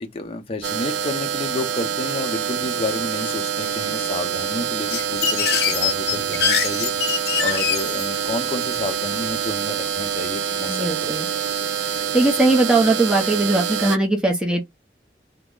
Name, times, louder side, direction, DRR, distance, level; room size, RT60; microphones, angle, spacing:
voice 1, 0.0-6.9 7.4-11.0, left 2 dB, 30° left, 0.6 m, -30 dB
sound 1, 0.6-14.0, right 8 dB, 80° right, 0.3 m, -26 dB
sound 2, 4.9-8.2, left 7 dB, 65° left, 0.8 m, -23 dB
voice 2, 10.7-11.3 12.1-14.6, right 2 dB, 5° right, 0.8 m, -19 dB
3.0 x 2.1 x 3.7 m
head